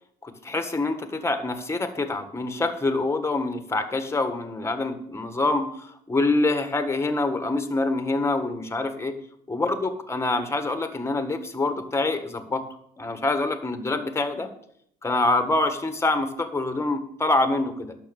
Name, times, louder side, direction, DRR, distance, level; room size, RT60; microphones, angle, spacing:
voice 1, 0.2-9.1 9.5-12.6 13.0-14.5 15.0-18.0, left 2 dB, 15° left, 8 dB, 1.5 m, -26 dB
11.5 x 6.1 x 7.1 m, 0.70 s
cardioid pair, 110°, 17 cm